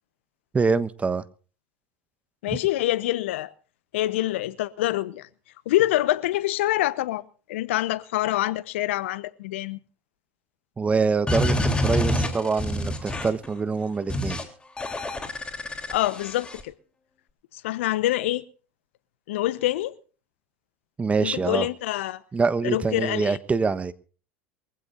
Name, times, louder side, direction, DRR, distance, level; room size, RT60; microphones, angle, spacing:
voice 1, 0.5-1.2 2.5-2.6 10.8-14.4 21.0-21.7 22.3-23.9, right 4 dB, 20° right, 1.2 m, -25 dB
voice 2, 2.4-3.5 3.9-5.3 5.7-7.2 7.5-9.8 15.9-16.7 17.6-18.4 19.3-20.0 21.2-22.2 22.6-23.4, left 15 dB, 70° left, 1.0 m, -25 dB
sound 1, 11.3-13.5 14.1-14.4 14.8-16.6, left 1 dB, 15° left, 3.5 m, -27 dB
24.0 x 15.5 x 2.6 m
hypercardioid pair, 85°, 7 cm